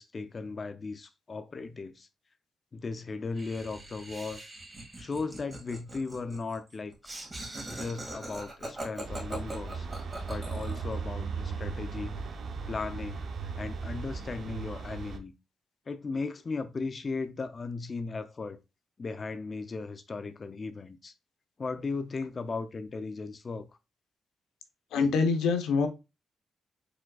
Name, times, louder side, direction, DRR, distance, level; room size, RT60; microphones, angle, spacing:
voice 1, 0.0-2.1 2.7-4.4 5.0-6.9 7.7-9.9 10.3-12.2 12.7-15.3 15.9-18.6 19.0-21.1 21.6-23.7, left 4 dB, 45° left, 0.4 m, -37 dB
Laughter, 3.4-10.9, right 1 dB, 25° right, 1.9 m, -42 dB
sound 1, 9.0-15.2, right 5 dB, 70° right, 0.7 m, -37 dB
voice 2, 24.9-25.9, left 5 dB, 90° left, 0.6 m, -25 dB
4.9 x 3.8 x 2.3 m
cardioid pair, 65°, 0 cm